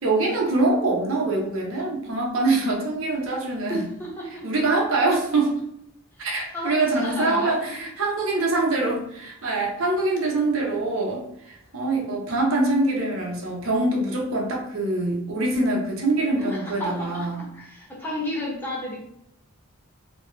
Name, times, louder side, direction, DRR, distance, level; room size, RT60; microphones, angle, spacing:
voice 1, 0.0-3.9 4.4-5.6 6.2-17.4, right 2 dB, 65° right, -1 dB, 0.9 m, -24 dB
voice 2, 3.7-4.4 6.5-7.7 16.4-19.0, equal, 10° left, -4 dB, 0.9 m, -32 dB
3.2 x 3.0 x 3.2 m, 0.75 s
head